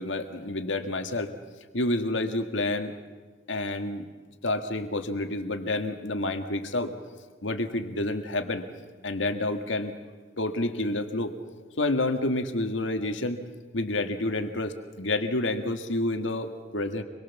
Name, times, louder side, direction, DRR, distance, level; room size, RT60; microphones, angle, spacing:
voice 1, 0.0-1.3 1.7-2.9 3.5-4.1 4.4-6.9 7.4-8.7 9.0-9.9 10.4-11.3 11.8-13.4 13.7-17.0, left 2 dB, 75° left, 7 dB, 1.9 m, -29 dB
26.0 x 22.0 x 7.3 m, 1.4 s
head